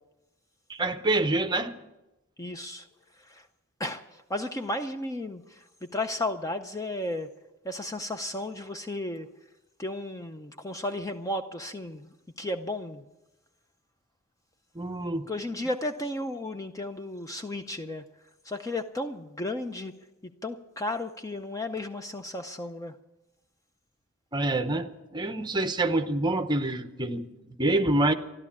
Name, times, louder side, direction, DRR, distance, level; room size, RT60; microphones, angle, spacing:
voice 1, 0.7-1.7 14.7-15.3 24.3-28.1, right 2 dB, 20° right, 8 dB, 0.8 m, -27 dB
voice 2, 2.4-2.9 3.2-3.5 3.8-7.3 7.6-9.3 9.8-13.0 15.3-18.0 18.4-19.9 20.4-23.0, left 1 dB, 15° left, 7 dB, 0.5 m, -34 dB
14.0 x 12.0 x 8.5 m, 0.99 s
head